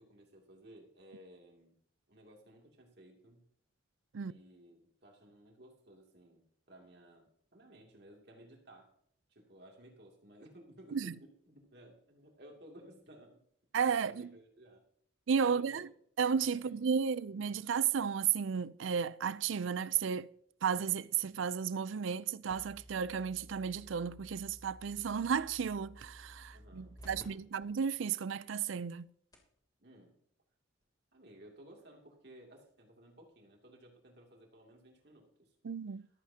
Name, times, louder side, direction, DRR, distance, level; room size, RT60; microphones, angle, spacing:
voice 1, 0.0-1.7 2.1-3.4 4.2-8.9 9.3-13.4 14.0-14.8 15.5-15.9 16.5-16.7 26.5-27.4 29.8-30.2 31.1-35.6, right 1 dB, 55° right, 2.6 m, -57 dB
voice 2, 13.7-14.3 15.3-15.9 16.2-20.3 20.6-29.1 35.6-36.1, right 7 dB, 75° right, 0.4 m, -33 dB
sound 1, 22.5-27.2 27.6-27.7 28.3-28.4 29.0-29.1 29.3-29.6 30.8-30.9, equal, 20° left, 3.0 m, -54 dB
14.0 x 14.0 x 2.8 m
head